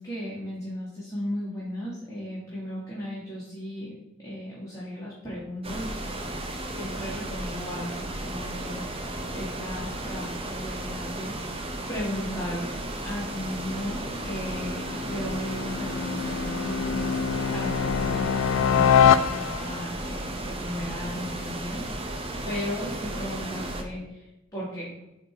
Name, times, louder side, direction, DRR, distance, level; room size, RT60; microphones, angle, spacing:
voice 1, 0.0-3.9 4.2-6.0 6.7-12.7 13.0-17.1 17.5-24.9, left 1 dB, 15° left, -7 dB, 1.9 m, -36 dB
sound 1, 5.6-23.8, right 1 dB, 30° right, 0.9 m, -34 dB
sound 2, 13.5-19.9, left 8 dB, 85° left, 0.4 m, -25 dB
8.0 x 3.6 x 4.9 m, 0.92 s
head